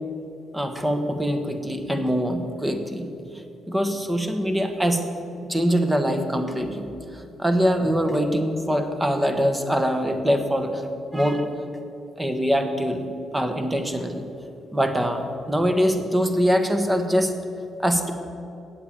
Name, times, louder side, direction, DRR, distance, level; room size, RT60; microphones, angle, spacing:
voice 1, 0.5-3.1 3.7-5.0 5.5-10.8 11.1-11.5 12.2-14.3 14.7-17.3 17.8-18.1, equal, 10° right, 6 dB, 1.3 m, -23 dB
9.0 x 8.1 x 8.4 m, 2.7 s
cardioid pair, 90°, 0 cm